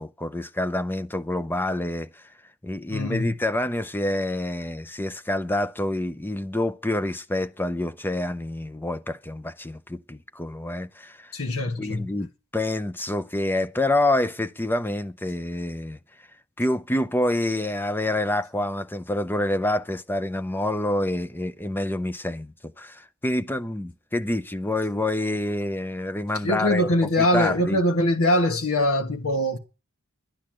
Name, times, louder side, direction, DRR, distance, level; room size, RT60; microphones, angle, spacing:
voice 1, 0.0-2.2 2.6-11.3 11.8-12.3 12.5-16.0 16.6-27.8, left 1 dB, 10° left, 0.6 m, -27 dB
voice 2, 2.9-3.3 11.3-12.0 26.4-29.6, left 1 dB, 70° left, 1.5 m, -23 dB
11.5 x 10.5 x 7.6 m
head